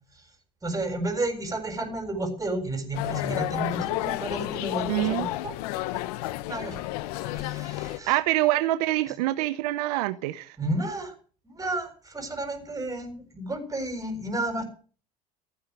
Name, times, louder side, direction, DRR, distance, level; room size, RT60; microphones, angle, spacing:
voice 1, 0.6-5.5 5.9-6.0 6.4-6.8 7.2-8.1 10.6-11.1 11.4-14.6, right 1 dB, 15° right, 7.2 m, -32 dB
sound 1, 2.9-8.0, left 16 dB, 75° left, 1.2 m, -31 dB
voice 2, 4.9-5.3 8.1-10.6, right 17 dB, 75° right, 1.0 m, -25 dB
15.0 x 9.7 x 9.4 m
hypercardioid pair, 85°, 20 cm